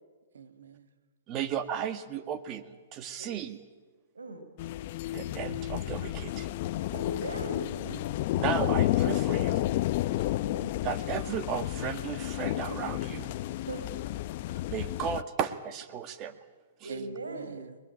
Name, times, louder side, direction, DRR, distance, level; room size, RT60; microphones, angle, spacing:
voice 1, 0.3-0.9 7.5-8.2 16.9-17.8, right 7 dB, 75° right, 1.9 m, -45 dB
voice 2, 1.3-3.6 5.1-6.5 8.4-9.8 10.8-13.4 14.5-16.4 16.8-16.9, right 8 dB, 30° right, 1.7 m, -35 dB
voice 3, 4.1-4.5 6.9-7.8 10.4-10.7 13.5-13.9 16.8-17.7, right 1 dB, 90° right, 4.5 m, -40 dB
sound 1, 4.6-15.2, left 15 dB, 45° left, 0.7 m, -31 dB
21.5 x 21.0 x 9.1 m
hypercardioid pair, 130°, 0 cm